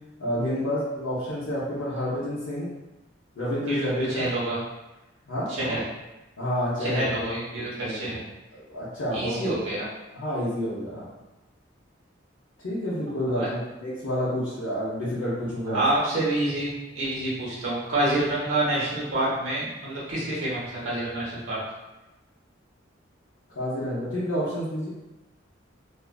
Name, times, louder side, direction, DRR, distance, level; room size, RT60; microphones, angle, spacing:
voice 1, 0.2-2.7 3.4-4.3 5.3-5.8 6.4-7.1 7.5-8.1 8.5-9.5 10.1-11.0 12.6-15.8 23.6-24.9, equal, 80° left, -10 dB, 0.6 m, -29 dB
voice 2, 3.7-4.6 5.5-5.8 6.8-8.2 9.1-9.9 13.3-13.5 15.7-21.6, right 1 dB, 75° right, -7 dB, 0.9 m, -27 dB
2.4 x 2.3 x 2.2 m, 1.0 s
head